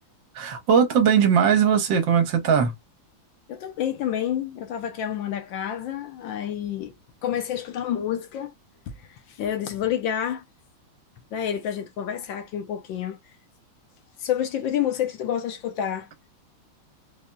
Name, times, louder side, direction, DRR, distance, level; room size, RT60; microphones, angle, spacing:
voice 1, 0.3-2.7, right 7 dB, 65° right, 1.4 m, -19 dB
voice 2, 3.5-6.9 7.2-8.5 9.1-10.4 11.3-13.2 14.2-16.1, left 10 dB, 70° left, 1.3 m, -28 dB
4.2 x 2.7 x 2.2 m
omnidirectional pair, 2.3 m